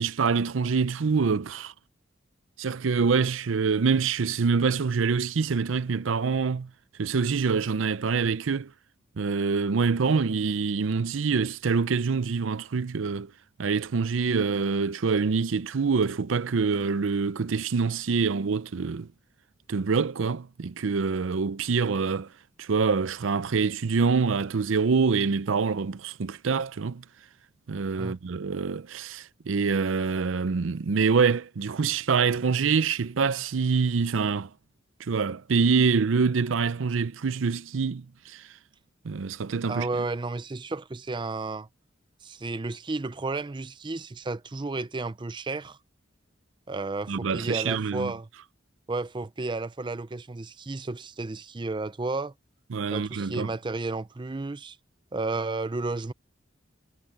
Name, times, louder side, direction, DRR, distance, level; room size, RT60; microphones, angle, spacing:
voice 1, 0.0-1.7 2.6-6.7 7.0-8.7 9.2-13.3 13.6-19.1 19.7-22.3 22.6-27.0 27.7-34.5 35.0-38.4 39.0-39.9 47.1-48.1 52.7-53.5, right 5 dB, 75° right, 0.5 m, -25 dB
voice 2, 39.7-41.7 42.2-45.8 46.7-48.3 48.9-52.3 52.9-54.8 55.1-56.1, right 3 dB, 25° right, 0.5 m, -32 dB
head